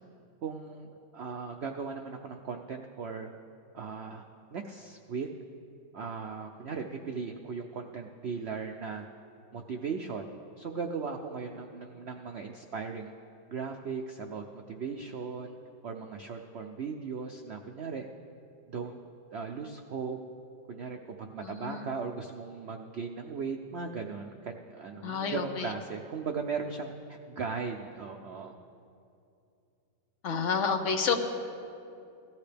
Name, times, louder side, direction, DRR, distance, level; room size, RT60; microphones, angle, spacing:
voice 1, 0.4-3.3 3.7-4.2 4.5-5.3 5.9-9.1 9.5-13.1 13.5-15.6 15.8-18.1 18.7-19.0 19.3-20.2 20.7-28.5, right 5 dB, 90° right, 4 dB, 0.5 m, -38 dB
voice 2, 21.4-21.9 25.0-25.7 30.2-31.2, left 5 dB, 50° left, 5 dB, 1.1 m, -29 dB
18.0 x 13.5 x 3.4 m, 2.6 s
omnidirectional pair, 1.9 m